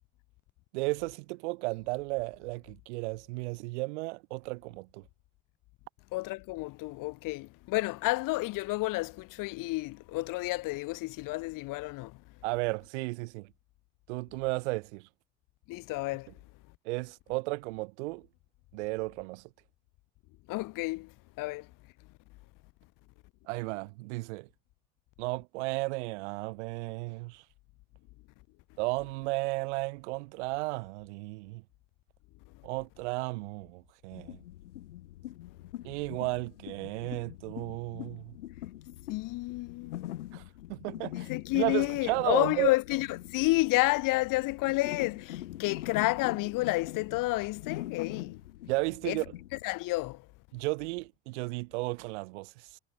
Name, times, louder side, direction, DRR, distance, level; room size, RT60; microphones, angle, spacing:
voice 1, 0.7-5.0 12.4-13.5 14.1-15.1 16.8-18.3 18.7-19.4 23.5-24.5 25.2-27.4 28.8-31.6 32.6-34.4 35.8-38.3 40.3-40.4 40.7-41.3 41.5-42.7 48.7-49.3 50.5-52.8, right 25 dB, 75° right, 5.2 m, -34 dB
voice 2, 6.1-12.1 15.7-16.3 20.5-21.1 21.4-21.7 39.1-40.2 41.2-43.1 43.3-48.4 49.1-49.2 49.6-50.2, left 21 dB, 65° left, 3.8 m, -30 dB
sound 1, 34.1-49.6, left 14 dB, 80° left, 3.3 m, -43 dB
hypercardioid pair, 60°, 35 cm